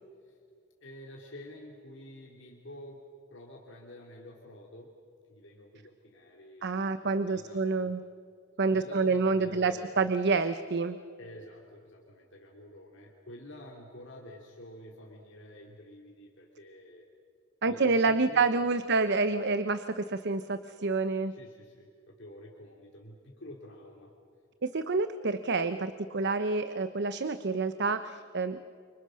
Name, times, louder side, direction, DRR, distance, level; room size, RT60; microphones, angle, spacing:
voice 1, 0.8-3.0 3.3-4.9 5.2-7.9 8.7-10.1 11.2-17.1 17.6-18.5 18.7-18.9 21.3-24.1, left 1 dB, 65° left, 0 dB, 2.9 m, -49 dB
voice 2, 6.6-8.0 8.6-11.0 17.6-21.3 24.6-28.6, right 4 dB, 55° right, 11 dB, 0.9 m, -28 dB
29.5 x 26.0 x 6.4 m, 2.3 s
head